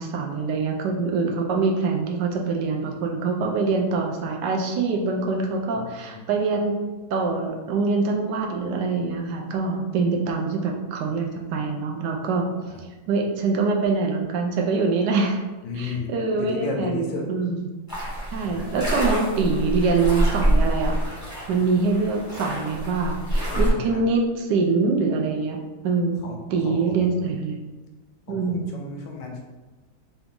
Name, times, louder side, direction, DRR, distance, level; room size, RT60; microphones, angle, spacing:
voice 1, 0.0-6.7 7.1-12.5 13.1-15.4 15.7-17.7 18.3-21.0 21.5-25.6 25.8-26.2 26.5-27.6 28.3-28.7, right 4 dB, 75° right, 1 dB, 1.1 m, -24 dB
voice 2, 15.6-17.3 18.4-18.6 23.5-24.0 26.2-26.4 26.6-27.3 28.3-29.4, left 3 dB, 75° left, 1 dB, 1.2 m, -33 dB
sound 1, 17.9-23.7, right 1 dB, 15° left, 0.7 m, -26 dB
3.9 x 2.3 x 3.6 m, 1.2 s
omnidirectional pair, 2.2 m